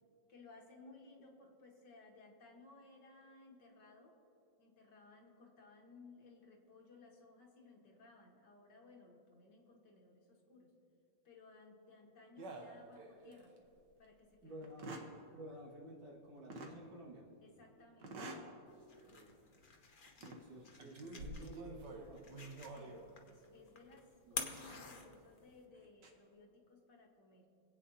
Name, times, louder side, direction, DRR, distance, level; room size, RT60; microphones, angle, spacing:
voice 1, 0.3-4.2 4.6-10.7 11.2-13.6 14.0-14.6 17.4-18.1 19.2-19.6 22.7-27.5, left 3 dB, 60° left, 0 dB, 2.0 m, -60 dB
sound 1, 12.4-13.4 13.9-14.0 14.6-15.2 16.5-16.8 18.0-18.5 19.0-19.2 20.1-20.4 20.8-23.1 24.5-24.8 25.8-26.1, right 2 dB, 65° right, 1.7 m, -48 dB
voice 2, 14.4-14.9 15.3-17.3 18.9-19.3 20.2-22.3 24.3-24.4, right 1 dB, 80° right, -4 dB, 2.7 m, -53 dB
sound 2, 18.7-25.6, left 4 dB, 40° left, 0.7 m, -50 dB
25.5 x 8.6 x 2.8 m, 2.6 s
omnidirectional pair, 2.1 m